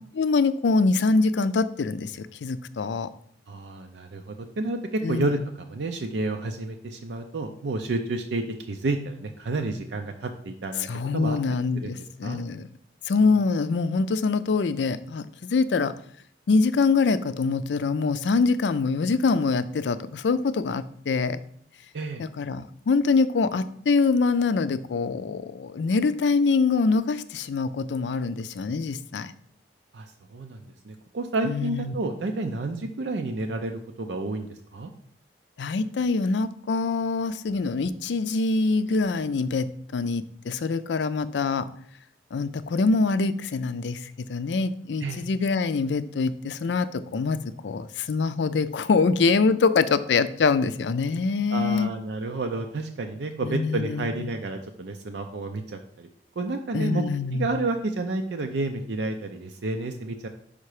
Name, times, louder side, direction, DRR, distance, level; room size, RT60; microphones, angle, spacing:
voice 1, 0.1-3.1 5.0-5.3 10.9-12.7 13.1-15.9 16.5-21.4 22.2-29.3 31.4-31.9 35.6-41.7 42.3-51.9 53.4-54.3 56.7-57.5, left 4 dB, 80° left, 13 dB, 0.4 m, -24 dB
voice 2, 3.5-10.9 11.1-11.4 11.7-11.9 12.2-12.4 21.9-22.2 29.9-30.6 30.8-34.9 45.0-45.2 51.5-56.1 56.4-57.0 57.3-60.3, right 2 dB, 80° right, 4 dB, 0.5 m, -30 dB
5.6 x 5.1 x 4.8 m, 0.65 s
head